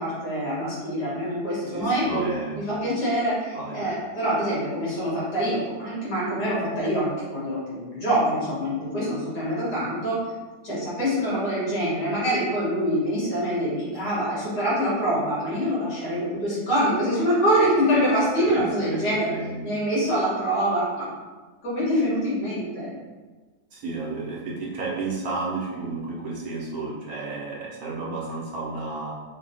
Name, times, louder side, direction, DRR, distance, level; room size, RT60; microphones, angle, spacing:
voice 1, 0.0-2.2 2.7-10.2 10.6-19.3 19.6-21.1 21.6-22.9, equal, 75° left, -8 dB, 2.2 m, -25 dB
voice 2, 1.7-2.8 3.5-3.9 18.5-19.0 19.3-19.6 23.7-29.1, right 3 dB, 70° right, -4 dB, 1.1 m, -32 dB
4.1 x 2.2 x 3.9 m, 1.3 s
omnidirectional pair, 1.7 m